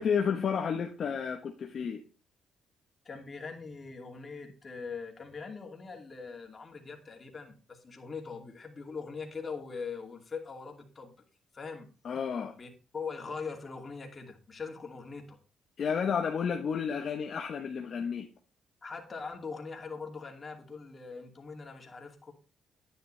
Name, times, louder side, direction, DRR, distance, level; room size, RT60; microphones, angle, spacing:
voice 1, 0.0-2.0 12.0-12.5 15.8-18.3, left 6 dB, 55° left, 1.1 m, -31 dB
voice 2, 3.0-11.1 11.5-11.9 12.5-15.4 18.8-22.3, left 5 dB, 35° left, 2.7 m, -42 dB
10.0 x 10.0 x 3.3 m
cardioid pair, 90°, 0 cm